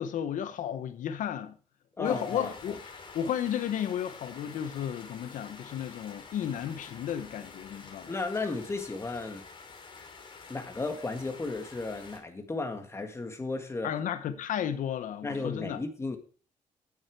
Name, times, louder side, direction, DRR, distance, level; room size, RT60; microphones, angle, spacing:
voice 1, 0.0-1.5 2.0-8.1 13.8-15.8, left 9 dB, 70° left, 0.9 m, -33 dB
sound 1, 2.0-12.2, left 4 dB, 40° left, 2.7 m, -48 dB
voice 2, 2.0-2.8 8.1-9.4 10.5-13.9 15.2-16.2, left 3 dB, 20° left, 1.8 m, -34 dB
9.5 x 8.9 x 4.7 m
cardioid pair, 130°, 14 cm